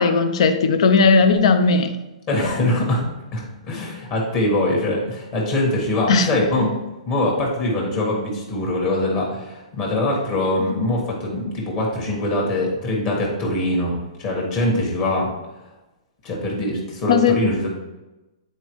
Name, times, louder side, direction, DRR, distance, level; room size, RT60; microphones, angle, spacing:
voice 1, 0.0-1.9 6.1-6.3 17.1-17.4, left 4 dB, 55° left, 9 dB, 0.7 m, -16 dB
voice 2, 2.3-3.0 3.3-6.8 7.1-15.3 16.2-17.7, left 1 dB, 30° left, -2 dB, 1.6 m, -23 dB
9.1 x 4.3 x 3.1 m, 1.0 s
hypercardioid pair, 165°, 4 cm